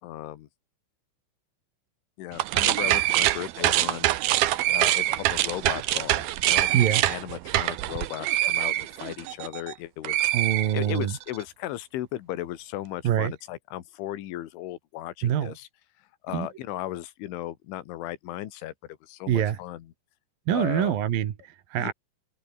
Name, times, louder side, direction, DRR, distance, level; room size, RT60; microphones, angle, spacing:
voice 1, 0.0-0.5 2.2-4.1 4.7-10.3 10.7-15.7 16.0-19.9 20.5-20.9 21.8-21.9, left 14 dB, 75° left, 4.1 m, -36 dB
sound 1, 2.3-9.7 10.0-11.2, right 15 dB, 75° right, 2.3 m, -25 dB
voice 2, 10.3-11.1 13.0-13.3 15.2-15.5 16.3-16.5 19.3-19.6 20.5-21.9, right 10 dB, 55° right, 3.1 m, -25 dB
omnidirectional pair, 5.7 m